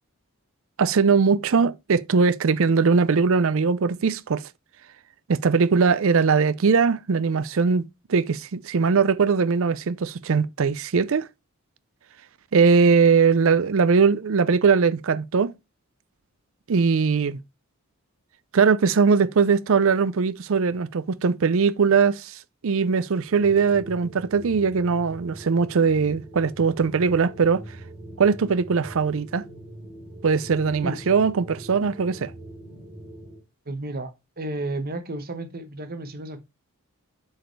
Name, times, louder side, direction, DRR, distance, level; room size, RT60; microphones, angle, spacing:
voice 1, 0.8-4.4 5.3-7.8 8.1-11.3 12.5-15.5 16.7-17.4 18.5-27.6 28.2-29.4 30.2-32.3, right 5 dB, 60° right, 0.5 m, -20 dB
sound 1, 23.2-33.4, right 1 dB, 20° right, 2.5 m, -42 dB
voice 2, 33.7-36.4, right 2 dB, 45° right, 1.0 m, -32 dB
7.7 x 4.7 x 3.2 m
head